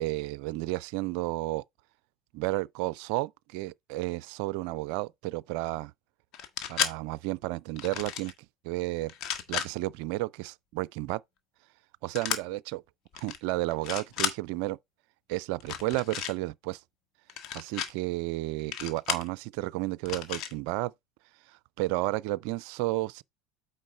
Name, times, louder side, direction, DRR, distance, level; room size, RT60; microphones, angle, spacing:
voice 1, 0.0-1.6 2.3-5.9 6.7-8.3 8.6-9.1 9.5-11.2 12.0-12.8 13.2-14.8 15.3-16.8 17.5-20.9 21.5-23.2, right 19 dB, 55° right, 0.4 m, -32 dB
sound 1, 6.3-6.9 7.7-8.3 9.1-9.7 12.1-12.4 13.1-13.4 13.7-14.3 15.6-16.3 17.3-17.9 18.7-19.3 20.0-20.5, left 9 dB, 45° left, 1.4 m, -33 dB
8.9 x 5.5 x 3.3 m
figure-of-eight pair, 75°, 0 cm